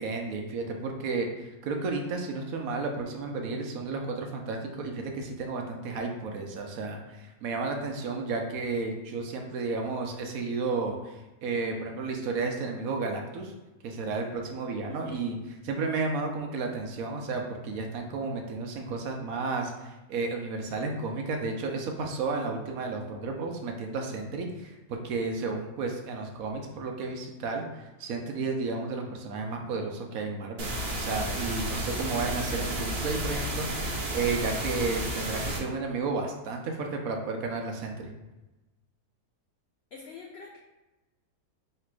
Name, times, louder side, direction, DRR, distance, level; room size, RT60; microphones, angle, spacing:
voice 1, 0.0-13.5 13.8-27.7 28.0-38.1, right 3 dB, 70° right, 2 dB, 1.0 m, -32 dB
voice 2, 14.9-15.3 39.9-40.6, left 4 dB, 80° left, 0 dB, 0.5 m, -45 dB
sound 1, 30.6-35.6, right 1 dB, 50° right, 0.9 m, -32 dB
3.3 x 2.9 x 4.5 m, 1.0 s
omnidirectional pair, 1.7 m